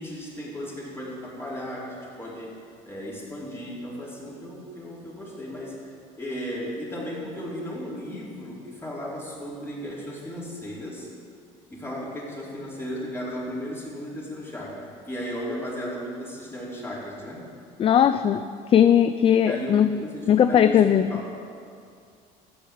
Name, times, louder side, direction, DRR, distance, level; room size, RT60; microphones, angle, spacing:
voice 1, 0.0-2.5 2.8-5.8 6.2-11.1 11.7-17.4 19.4-21.3, equal, 15° left, -5 dB, 4.6 m, -35 dB
voice 2, 17.8-19.9 20.3-21.1, left 9 dB, 35° left, 11 dB, 0.4 m, -19 dB
14.0 x 8.5 x 8.6 m, 2.3 s
cardioid pair, 105°, 16 cm